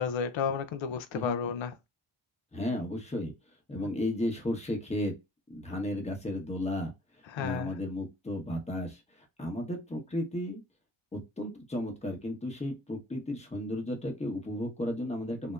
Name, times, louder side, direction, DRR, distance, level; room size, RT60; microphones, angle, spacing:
voice 1, 0.0-1.7 7.3-7.7, left 6 dB, 65° left, 0.6 m, -32 dB
voice 2, 2.5-3.3 3.7-5.1 5.5-6.9 7.4-9.0 9.4-10.6 11.1-15.5, left 1 dB, 15° left, 0.9 m, -34 dB
2.7 x 2.1 x 2.3 m
cardioid pair, 95°, 49 cm